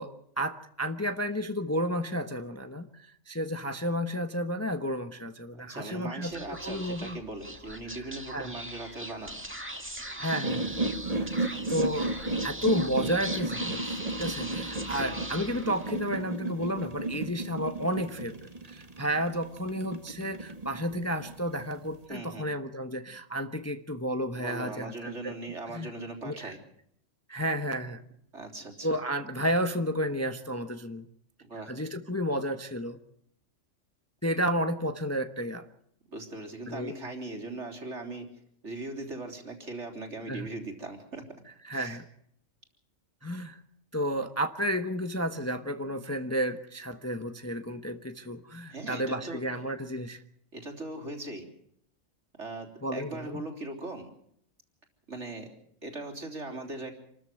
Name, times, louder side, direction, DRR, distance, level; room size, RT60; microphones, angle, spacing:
voice 1, 0.0-7.2 7.9-8.0 8.3-8.5 10.0-10.8 11.1-11.4 11.7-12.1 12.4-18.3 18.7-25.3 25.7-25.9 26.2-26.5 27.3-28.0 28.8-31.1 31.7-33.0 34.2-35.7 36.7-36.9 40.3-40.5 41.6-42.0 43.2-43.6 43.9-50.2 52.8-53.4, equal, 15° left, 8 dB, 1.0 m, -32 dB
voice 2, 5.5-9.4 11.1-11.6 15.0-15.3 22.1-22.5 24.3-26.6 28.3-28.9 31.4-31.7 36.1-38.3 38.6-41.2 41.7-42.0 48.7-49.4 50.5-51.5 52.4-54.1 55.1-55.5 55.8-56.9, right 2 dB, 60° right, 3 dB, 3.7 m, -39 dB
Speech / Whispering, 6.3-16.1, right 1 dB, 10° right, 2.1 m, -40 dB
sound 1, 10.3-22.0, right 2 dB, 30° right, 1.5 m, -34 dB
27.5 x 13.5 x 7.8 m, 0.70 s
omnidirectional pair, 1.4 m